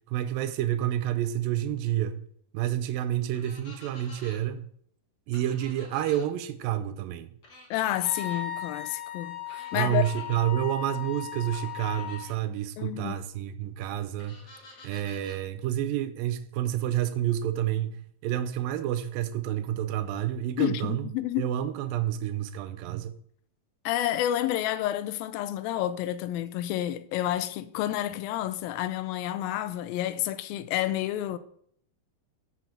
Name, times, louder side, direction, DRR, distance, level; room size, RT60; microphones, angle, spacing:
voice 1, 0.1-2.2 2.5-4.7 5.3-7.3 9.7-14.4 14.8-21.1 21.4-23.1, right 12 dB, 80° right, 2.4 m, -29 dB
sound 1, 3.3-4.4 5.3-6.3 7.4-8.4 9.5-10.4 11.5-12.4 14.2-15.4, left 2 dB, 40° left, 1.7 m, -50 dB
voice 2, 7.7-10.0 12.8-13.2 20.6-21.5 23.9-31.4, left 13 dB, 90° left, 2.4 m, -29 dB
Wind instrument woodwind instrument, 8.0-12.3, left 11 dB, 10° left, 0.8 m, -37 dB
7.6 x 5.8 x 5.8 m
omnidirectional pair, 4.1 m